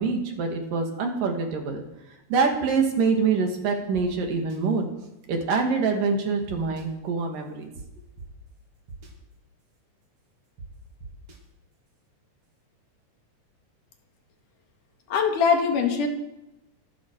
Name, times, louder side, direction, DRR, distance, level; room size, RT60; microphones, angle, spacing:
voice 1, 0.0-1.8 2.3-4.9 5.3-7.7, right 4 dB, 80° right, 3 dB, 3.9 m, -25 dB
sound 1, 3.9-4.0 4.5-4.6 6.5-6.8 7.8-7.9 8.2-8.3 8.9-9.1 10.6-10.7 11.0-11.4, right 4 dB, 45° right, 3.3 m, -41 dB
voice 2, 15.1-16.1, left 5 dB, 70° left, 4 dB, 3.3 m, -22 dB
25.0 x 11.5 x 4.8 m, 0.93 s
omnidirectional pair, 3.8 m